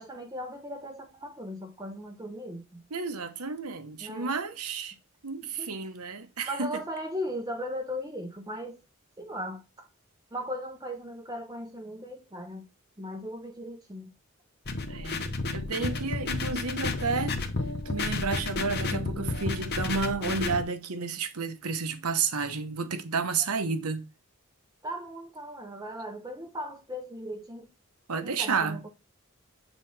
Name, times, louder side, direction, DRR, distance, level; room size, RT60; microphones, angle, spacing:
voice 1, 0.0-2.8 4.0-4.4 5.4-5.9 6.4-8.8 9.2-9.9 10.3-12.6 13.0-14.1 19.3-19.5 23.4-23.5 24.8-27.7 28.2-28.9, equal, 15° right, 0.7 m, -38 dB
voice 2, 2.9-4.9 5.2-6.7 14.9-17.4 17.8-24.0 28.1-28.8, right 4 dB, 90° right, 1.0 m, -31 dB
sound 1, 14.7-20.6, left 3 dB, 45° left, 0.9 m, -31 dB
7.7 x 4.1 x 3.3 m
head